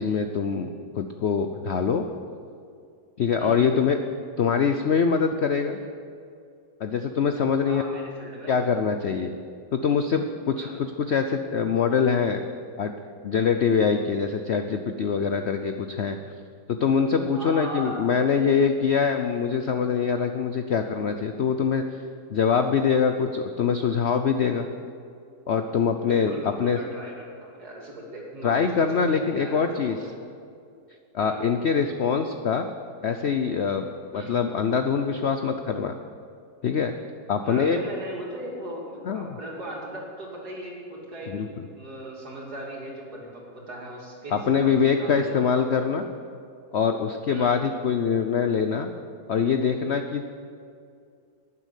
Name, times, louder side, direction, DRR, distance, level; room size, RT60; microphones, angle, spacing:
voice 1, 0.0-2.0 3.2-4.0 4.4-5.8 6.8-7.8 8.5-9.3 9.7-12.4 12.8-12.9 13.2-16.2 16.7-21.8 22.3-24.7 25.5-26.8 28.4-30.0 31.1-32.7 33.0-33.9 34.1-35.9 36.6-36.9 37.3-37.8 39.1-39.3 41.3-41.6 44.3-46.0 46.7-48.9 49.3-50.3, left 6 dB, 85° left, 7 dB, 0.5 m, -24 dB
voice 2, 3.4-3.8 7.6-8.5 10.5-10.8 17.3-18.0 26.1-28.8 29.1-30.1 31.2-31.4 34.1-34.3 37.4-45.5 47.3-47.6, right 1 dB, 60° right, -3 dB, 3.2 m, -38 dB
12.0 x 9.9 x 8.2 m, 2.4 s
omnidirectional pair, 2.0 m